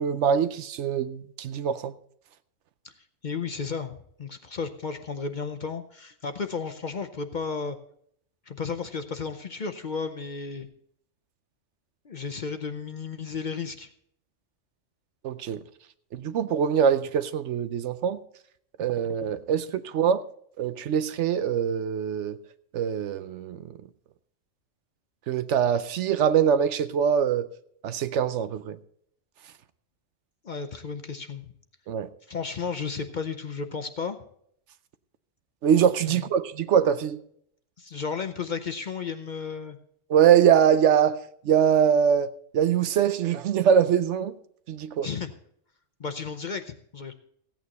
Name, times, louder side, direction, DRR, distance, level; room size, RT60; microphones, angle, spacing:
voice 1, 0.0-1.9 15.2-15.6 16.1-18.2 18.8-20.2 20.6-22.4 22.7-23.6 25.3-27.5 27.8-28.8 31.9-32.1 35.6-37.2 40.1-44.3 44.7-45.1, right 8 dB, 70° right, 0.9 m, -23 dB
voice 2, 3.2-7.8 8.5-10.7 12.0-13.9 30.4-31.4 32.3-34.2 36.1-36.2 37.8-39.8 45.0-45.3 46.0-47.1, left 5 dB, 45° left, 0.7 m, -33 dB
15.5 x 8.9 x 4.1 m
omnidirectional pair, 1.3 m